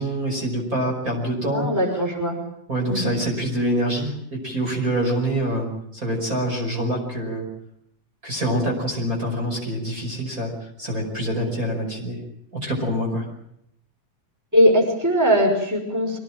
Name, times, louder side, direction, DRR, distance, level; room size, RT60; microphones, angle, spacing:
voice 1, 0.0-1.7 2.7-7.5 8.2-12.2 12.6-13.3, right 1 dB, 25° right, 0 dB, 5.9 m, -25 dB
voice 2, 1.5-2.4 2.9-3.1 14.5-16.2, equal, 5° right, 2 dB, 5.6 m, -20 dB
25.0 x 18.5 x 8.9 m, 0.74 s
omnidirectional pair, 3.6 m